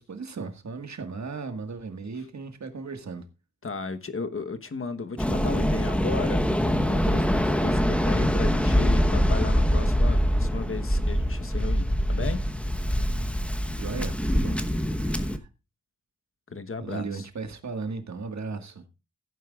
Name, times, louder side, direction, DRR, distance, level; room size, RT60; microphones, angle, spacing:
voice 1, 0.0-3.2 13.2-13.3 13.7-14.6 14.9-15.5 16.8-18.9, right 4 dB, 65° right, 1.7 m, -36 dB
voice 2, 3.6-12.4 16.5-17.3, left 4 dB, 45° left, 1.1 m, -35 dB
Waves surf, 5.2-15.4, equal, 5° left, 1.0 m, -24 dB
16.0 x 9.1 x 2.4 m
wide cardioid pair, 80°, 31 cm